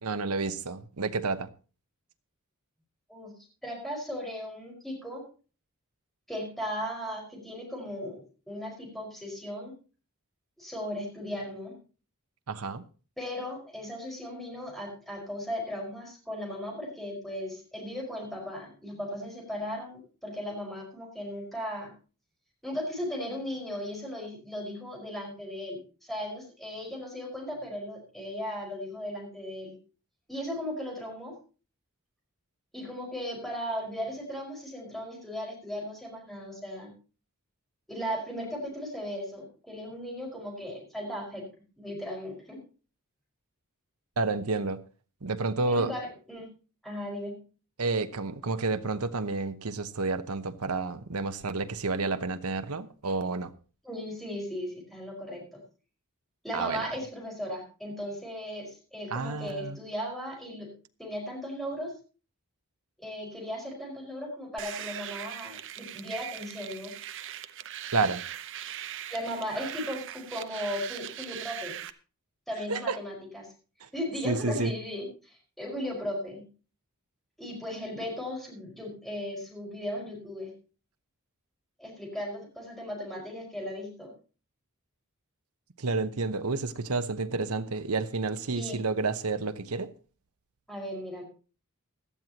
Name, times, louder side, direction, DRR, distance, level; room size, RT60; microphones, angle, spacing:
voice 1, 0.0-1.5 12.5-12.8 44.2-44.8 45.2-45.9 47.8-53.5 56.5-56.9 59.1-59.8 67.9-68.2 72.7-73.0 73.8-73.9 74.2-74.7 85.8-89.9, right 3 dB, 80° right, 1.0 m, -30 dB
voice 2, 3.1-5.2 6.3-9.7 10.6-11.8 13.2-21.9 22.6-29.7 30.3-31.4 32.7-36.9 37.9-41.5 41.8-42.6 45.7-46.5 46.8-47.4 53.8-55.4 56.4-60.7 61.0-61.9 63.0-66.9 69.1-71.8 72.5-73.5 73.9-76.5 77.4-80.5 81.8-84.1 88.5-88.8 90.7-91.2, equal, ahead, 5.1 m, -37 dB
sound 1, 64.6-71.9, right 11 dB, 60° right, 0.8 m, -40 dB
17.0 x 12.5 x 2.9 m
head